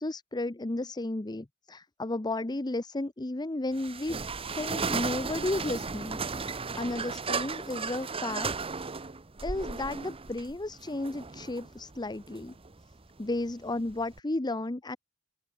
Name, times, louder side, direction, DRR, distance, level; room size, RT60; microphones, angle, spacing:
voice 1, 0.0-4.2 4.5-8.5 9.4-12.5 13.2-15.0, left 2 dB, 20° left, 0.8 m, -33 dB
sound 1, 3.7-14.2, right 4 dB, 25° right, 0.9 m, -35 dB
open air
head